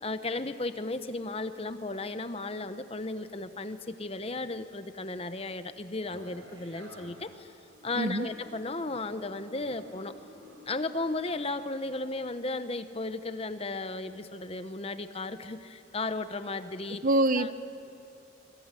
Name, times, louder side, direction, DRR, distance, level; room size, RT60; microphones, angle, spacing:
voice 1, 0.0-7.5 7.8-10.2 10.6-17.0 17.4-17.5, left 2 dB, 30° left, 11 dB, 0.9 m, -35 dB
sound 1, 6.0-7.3 7.7-11.4, left 1 dB, 80° right, 6.8 m, -52 dB
voice 2, 8.0-8.3 17.0-17.5, right 2 dB, 40° right, 13 dB, 0.7 m, -25 dB
27.0 x 22.0 x 9.9 m, 2.7 s
head